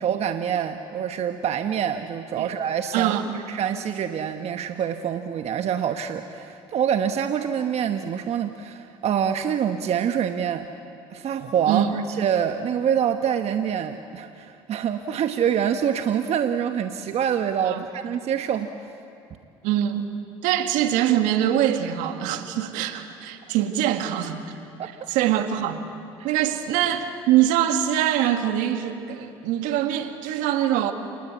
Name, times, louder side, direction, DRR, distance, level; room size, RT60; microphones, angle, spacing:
voice 1, 0.0-3.1 3.5-10.7 11.1-18.7 24.8-25.1 26.2-26.4, right 8 dB, 50° right, 7 dB, 1.1 m, -26 dB
voice 2, 2.9-3.3 11.7-12.0 17.6-17.9 19.6-20.1 20.4-24.4 25.1-25.8 26.2-30.9, right 11 dB, 70° right, 7 dB, 1.9 m, -23 dB
28.0 x 20.0 x 8.2 m, 2.6 s
hypercardioid pair, 65°, 13 cm